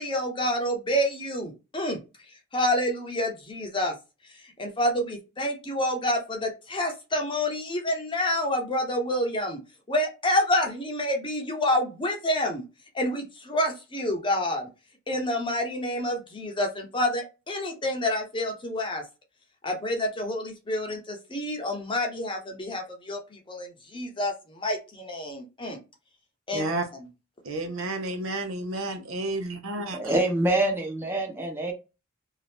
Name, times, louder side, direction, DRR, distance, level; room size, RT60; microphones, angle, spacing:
voice 1, 0.0-2.0 2.5-3.9 4.4-9.6 9.9-12.6 12.9-14.7 15.1-19.0 19.6-25.8 26.5-26.7, left 1 dB, 25° left, 2 dB, 0.7 m, -28 dB
voice 2, 26.5-26.9 27.4-30.1, right 2 dB, 80° right, 5 dB, 0.8 m, -31 dB
voice 3, 29.9-31.7, right 2 dB, 10° right, 0 dB, 0.9 m, -25 dB
2.8 x 2.4 x 3.4 m, 0.28 s
head